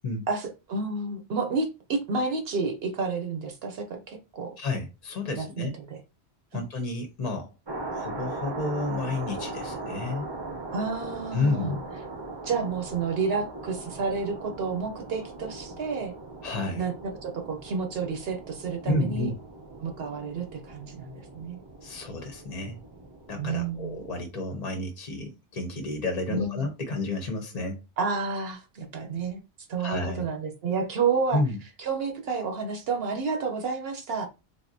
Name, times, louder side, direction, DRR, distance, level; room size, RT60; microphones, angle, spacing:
voice 1, 0.3-4.6 5.4-6.0 6.5-6.6 10.7-11.8 12.4-16.1 16.8-19.3 19.8-21.6 23.4-24.0 26.3-26.7 28.0-29.4 29.7-31.4 31.8-34.3, right 4 dB, 65° right, 0.9 m, -30 dB
voice 2, 4.6-5.7 6.5-7.5 7.9-10.3 11.3-11.8 16.4-16.8 18.9-19.3 21.8-22.8 23.3-27.8 29.8-30.3 31.3-31.6, left 2 dB, 45° left, 0.6 m, -31 dB
sound 1, 7.7-24.2, right 2 dB, 30° right, 0.6 m, -39 dB
3.4 x 2.6 x 2.6 m
omnidirectional pair, 1.1 m